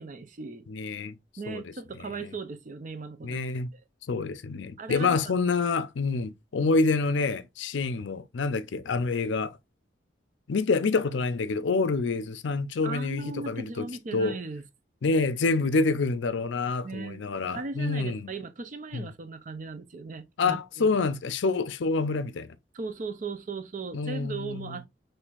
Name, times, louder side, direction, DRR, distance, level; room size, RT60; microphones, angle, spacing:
voice 1, 0.0-0.7 1.4-3.4 3.7-3.8 4.8-5.2 12.8-14.6 16.8-17.2 17.5-21.0 22.7-24.9, right 4 dB, 45° right, 0.5 m, -37 dB
voice 2, 0.7-1.2 1.5-1.6 2.0-2.3 3.2-3.7 4.1-9.6 10.5-13.9 14.1-14.4 15.0-18.3 18.9-19.1 20.4-22.6 23.9-24.8, left 3 dB, 75° left, 0.5 m, -27 dB
6.1 x 3.2 x 2.3 m
head